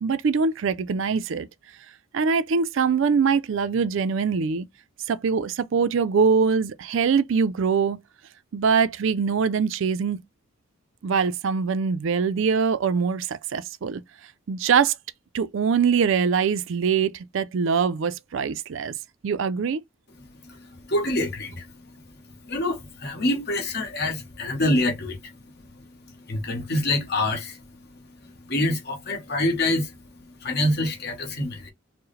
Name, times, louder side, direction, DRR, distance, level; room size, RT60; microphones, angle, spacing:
voice 1, 0.0-1.5 2.1-4.7 5.1-8.0 8.5-10.2 11.0-14.0 14.5-14.9 15.3-18.9 19.2-19.8, right 5 dB, 60° right, 0.4 m, -23 dB
voice 2, 20.8-21.7 22.4-25.3 26.3-27.6 28.2-30.0 30.4-31.7, left 1 dB, 50° left, 1.1 m, -26 dB
4.6 x 2.1 x 3.1 m
head